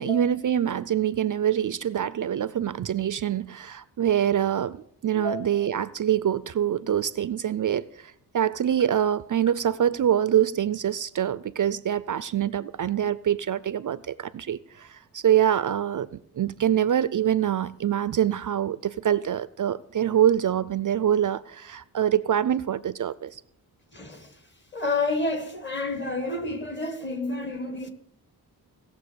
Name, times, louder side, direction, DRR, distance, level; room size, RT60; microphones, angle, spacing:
voice 1, 0.0-23.4, right 10 dB, 55° right, 0.4 m, -25 dB
voice 2, 5.1-5.5 23.9-24.3 24.7-27.9, left 2 dB, 30° left, 1.5 m, -30 dB
17.5 x 6.8 x 6.8 m
wide cardioid pair, 145°, 39 cm